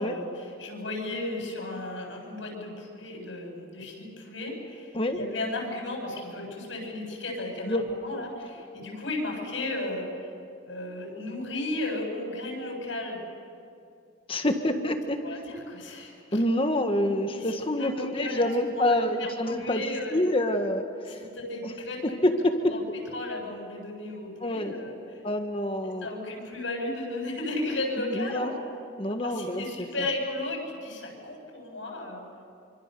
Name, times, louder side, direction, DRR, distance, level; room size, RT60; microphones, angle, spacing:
voice 1, 0.0-10.1 10.6-13.2 15.2-16.4 17.3-20.2 21.1-22.1 22.6-22.8 23.1-25.2 25.8-28.5 29.2-32.2, left 2 dB, 75° left, 0 dB, 8.0 m, -34 dB
voice 2, 14.3-15.4 16.3-21.2 21.6-21.7 22.0-22.8 24.4-24.7 25.2-26.1 28.0-28.5 29.0-29.9, left 1 dB, 30° left, 6 dB, 1.5 m, -27 dB
27.5 x 25.5 x 6.9 m, 2.4 s
head